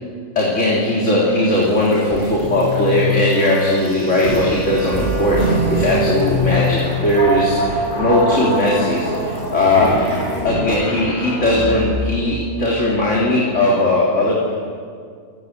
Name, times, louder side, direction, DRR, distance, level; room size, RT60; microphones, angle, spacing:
voice 1, 0.4-9.9 10.4-14.5, left 1 dB, 50° left, -5 dB, 3.9 m, -18 dB
sound 1, 0.9-12.1, equal, 30° right, 8.3 m, -23 dB
29.5 x 13.0 x 8.4 m, 2.1 s
omnidirectional pair, 1.6 m